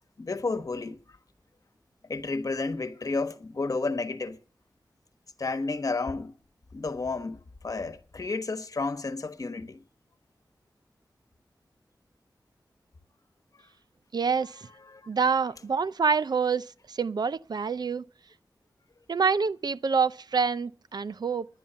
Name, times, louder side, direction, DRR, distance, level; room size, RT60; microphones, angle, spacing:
voice 1, 0.2-1.0 2.1-4.4 5.4-6.3 6.7-9.8 14.9-15.1, left 3 dB, 50° left, 1.2 m, -31 dB
voice 2, 14.1-14.7 15.1-18.0 19.1-21.5, right 5 dB, 70° right, 0.5 m, -27 dB
10.5 x 10.0 x 6.7 m
wide cardioid pair, 95°, 7 cm